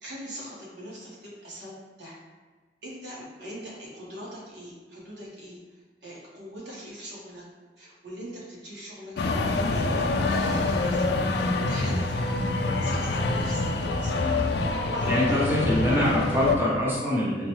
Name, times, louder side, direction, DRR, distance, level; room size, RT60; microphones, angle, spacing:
voice 1, 0.0-2.2 2.8-5.6 6.0-7.4 7.8-11.1 11.3-12.2 12.8-14.2 14.9-15.6 15.8-16.0, equal, 85° right, -5 dB, 1.2 m, -41 dB
sound 1, 9.2-16.6, left 3 dB, 70° left, 0.3 m, -26 dB
voice 2, 15.1-17.5, equal, 10° right, -6 dB, 0.6 m, -24 dB
4.7 x 2.2 x 3.0 m, 1.4 s
head